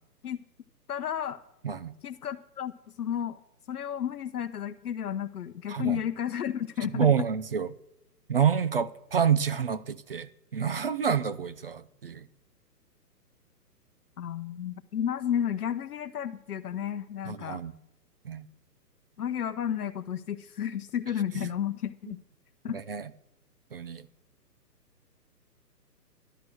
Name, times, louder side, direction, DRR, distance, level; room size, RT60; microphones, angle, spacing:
voice 1, 0.9-1.4 2.0-2.7 3.0-3.4 3.7-7.3 14.2-17.6 19.2-22.2 22.6-22.8, left 9 dB, 65° left, 0.8 m, -32 dB
voice 2, 5.7-6.0 6.9-7.7 8.3-12.2 17.3-17.7 18.2-18.4 22.7-23.0 23.7-24.1, right 7 dB, 40° right, 0.4 m, -28 dB
11.0 x 11.0 x 6.2 m
hypercardioid pair, 140°, 49 cm